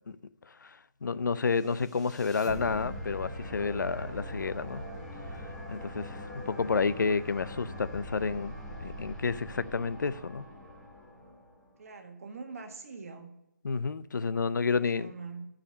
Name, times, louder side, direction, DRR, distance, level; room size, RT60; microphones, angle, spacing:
voice 1, 0.6-4.8 5.7-8.5 8.8-10.4 13.6-15.1, left 4 dB, 85° left, 0.5 m, -30 dB
sound 1, 1.5-11.7, equal, 5° left, 1.2 m, -42 dB
voice 2, 11.8-13.3 14.6-15.5, right 4 dB, 50° right, 1.4 m, -44 dB
10.5 x 5.0 x 5.1 m
hypercardioid pair, 165°, 10 cm